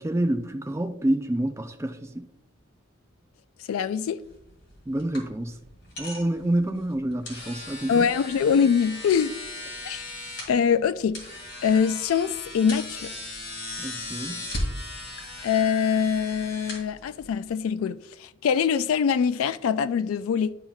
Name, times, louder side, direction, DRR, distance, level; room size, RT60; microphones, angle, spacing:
voice 1, 0.0-2.3 4.9-5.6 6.0-8.1 13.8-14.5, right 1 dB, 15° right, 0.4 m, -28 dB
voice 2, 3.7-4.2 7.9-9.3 9.8-10.0 10.5-11.2 11.6-13.1 15.4-20.6, left 7 dB, 85° left, 0.3 m, -24 dB
sound 1, 4.2-17.5, left 1 dB, 55° left, 2.2 m, -38 dB
10.5 x 5.6 x 2.3 m
head